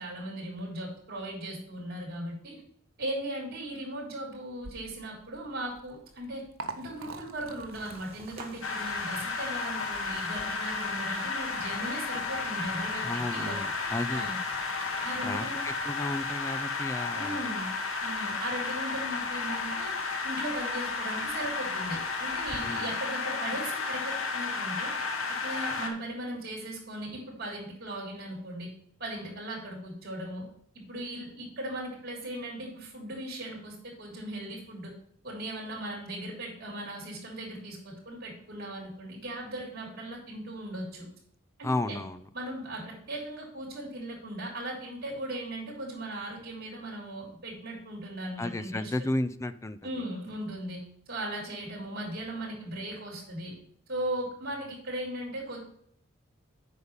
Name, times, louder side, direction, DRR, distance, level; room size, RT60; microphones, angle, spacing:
voice 1, 0.0-2.6 3.0-6.4 6.8-13.6 14.1-14.4 15.0-15.6 17.1-17.7 18.0-19.9 20.2-24.9 25.4-28.7 29.0-30.4 30.7-34.9 35.2-41.1 41.6-42.0 42.3-48.9 49.8-50.8 51.1-53.5 53.9-55.6, right 1 dB, 50° right, -3 dB, 3.7 m, -38 dB
Liquid, 4.6-22.6, right 4 dB, 80° right, 1.0 m, -50 dB
sound 1, 7.7-16.3, right 2 dB, 30° right, 2.1 m, -52 dB
sound 2, 8.6-25.9, left 4 dB, 85° left, 1.7 m, -33 dB
voice 2, 13.0-14.3 15.2-17.5 22.6-22.9 41.6-42.3 48.4-50.0, left 1 dB, 15° left, 13 dB, 0.5 m, -33 dB
8.1 x 5.2 x 7.2 m, 0.64 s
head